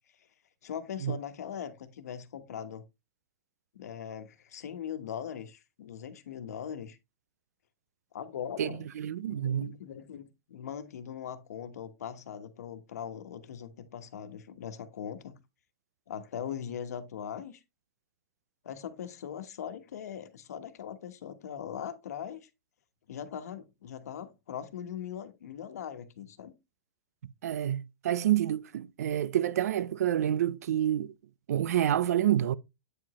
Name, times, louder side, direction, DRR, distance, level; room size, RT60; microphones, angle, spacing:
voice 1, 0.6-2.8 3.7-7.0 8.1-8.9 9.3-15.4 16.1-17.6 18.6-22.5 23.1-26.5, left 8 dB, 80° left, 1.2 m, -40 dB
voice 2, 9.0-9.7 27.4-31.1 31.5-32.6, right 11 dB, 75° right, 0.5 m, -28 dB
8.7 x 5.0 x 3.0 m
supercardioid pair, 175°, 9 cm